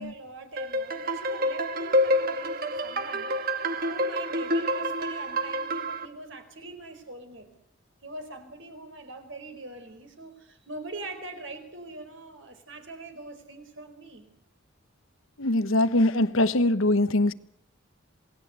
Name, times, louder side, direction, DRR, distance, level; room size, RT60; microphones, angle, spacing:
voice 1, 0.0-7.5 8.0-14.3, right 2 dB, 65° right, 4.6 m, -43 dB
sound 1, 0.6-6.1, equal, 45° right, 1.6 m, -28 dB
voice 2, 15.4-17.3, left 1 dB, 80° left, 1.3 m, -22 dB
27.5 x 18.5 x 8.2 m
head